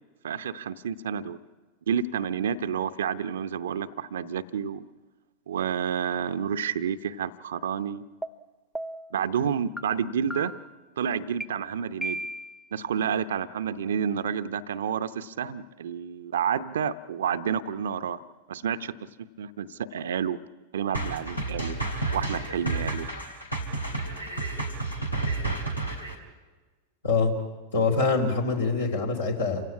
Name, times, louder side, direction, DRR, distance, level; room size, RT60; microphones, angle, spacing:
voice 1, 0.2-1.4 1.9-4.8 5.5-8.0 9.1-10.5 11.0-12.2 12.7-18.2 18.5-18.9 19.2-20.4 20.7-21.8 22.1-23.1, right 7 dB, 65° right, 11 dB, 0.8 m, -29 dB
sound 1, 8.2-8.3 8.7-9.1 9.8-9.9 10.3-10.8 11.4-11.5 12.0-12.6, right 1 dB, ahead, 0.7 m, -34 dB
sound 2, 20.9-26.2, right 3 dB, 90° left, 3.1 m, -31 dB
voice 2, 27.0-27.4 27.7-29.6, left 4 dB, 70° left, 2 dB, 3.5 m, -24 dB
28.0 x 16.5 x 8.7 m, 1.3 s
figure-of-eight pair, 90°, 0 cm